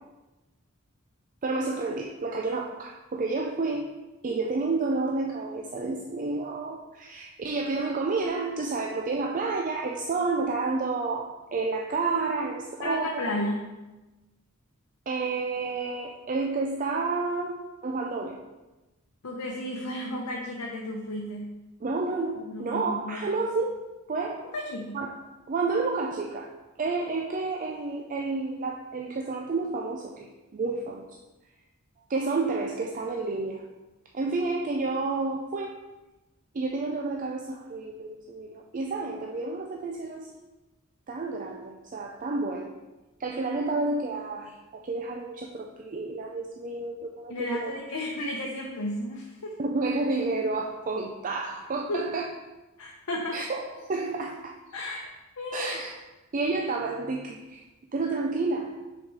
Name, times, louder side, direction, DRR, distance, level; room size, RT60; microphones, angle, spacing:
voice 1, 1.4-3.9 4.2-13.1 15.1-18.4 21.8-23.8 24.1-24.5 24.9-25.1 25.5-26.5 26.8-31.1 32.1-33.6 34.1-35.7 36.5-40.3 41.1-42.7 43.2-47.7 49.6-52.3 53.3-53.6 53.9-54.6 55.5-56.0 56.3-57.6 57.9-58.8, right 3 dB, 40° right, 1 dB, 0.5 m, -30 dB
voice 2, 12.8-13.6 19.2-21.6 22.4-23.2 24.5-25.0 47.3-49.5 51.9-52.0 52.8-53.4 54.7-55.1 55.4-55.7, left 1 dB, 90° left, -2 dB, 0.8 m, -33 dB
6.1 x 4.2 x 4.7 m, 1.1 s
head